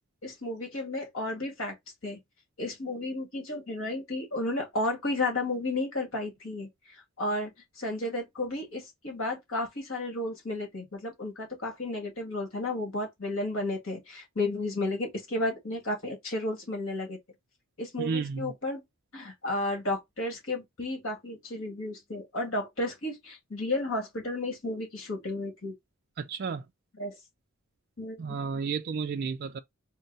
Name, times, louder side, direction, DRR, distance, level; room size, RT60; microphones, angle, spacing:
voice 1, 0.2-1.8 2.0-2.2 2.6-6.7 7.2-7.5 7.8-17.2 17.8-18.8 19.1-25.7 26.9-27.2 28.0-28.4, left 2 dB, 70° left, 2.1 m, -33 dB
voice 2, 18.0-18.5 26.2-26.6 28.2-29.6, right 5 dB, 50° right, 0.4 m, -32 dB
4.4 x 2.1 x 3.9 m
head